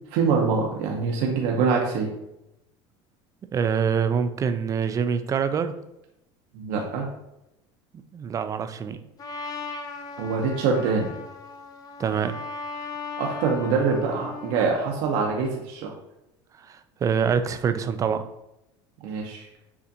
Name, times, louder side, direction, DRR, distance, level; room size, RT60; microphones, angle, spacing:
voice 1, 0.1-2.1 6.5-7.1 10.2-11.1 13.2-15.9 19.0-19.5, right 5 dB, 70° right, 0 dB, 0.8 m, -24 dB
voice 2, 3.5-5.7 8.1-9.0 12.0-12.3 16.7-18.2, right 6 dB, 25° right, 10 dB, 0.3 m, -25 dB
Trumpet, 9.2-14.7, left 4 dB, 30° left, 0.6 m, -37 dB
6.9 x 2.5 x 2.7 m, 0.88 s
supercardioid pair, 120°, 13 cm